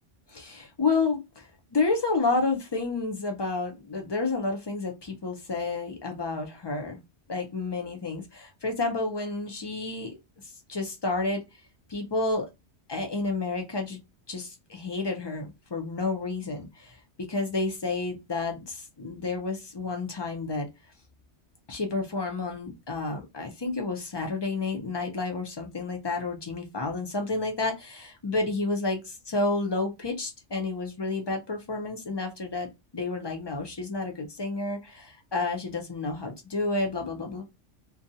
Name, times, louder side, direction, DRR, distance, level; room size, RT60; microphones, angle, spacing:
voice 1, 0.3-1.2 1.7-7.0 7.3-10.2 10.7-11.4 11.9-12.5 12.9-14.0 14.3-20.7 21.7-29.0 29.3-37.4, left 3 dB, 40° left, 0.4 m, -30 dB
2.6 x 2.2 x 2.6 m
omnidirectional pair, 1.2 m